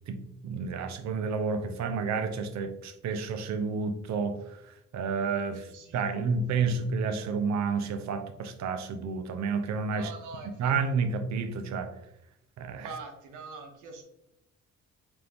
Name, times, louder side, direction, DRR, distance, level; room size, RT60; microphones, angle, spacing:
voice 1, 0.1-10.1 10.6-11.9 12.6-12.9, right 5 dB, 65° right, 8 dB, 0.6 m, -30 dB
voice 2, 5.6-6.2 6.5-6.6 7.2-7.3 9.9-10.7 12.8-14.0, right 4 dB, 85° right, 3 dB, 0.9 m, -44 dB
4.4 x 2.6 x 3.4 m, 0.85 s
cardioid pair, 90°, 30 cm